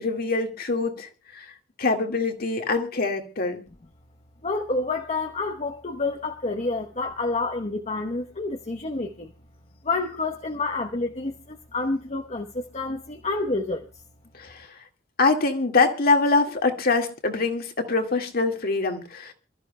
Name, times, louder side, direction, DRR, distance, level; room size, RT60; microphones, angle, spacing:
voice 1, 0.0-1.5 1.8-3.6 14.3-14.8 15.2-19.3, left 3 dB, 55° left, 1.9 m, -24 dB
voice 2, 4.4-9.3 9.8-13.9, left 3 dB, 35° left, 1.0 m, -28 dB
27.5 x 13.0 x 2.2 m
head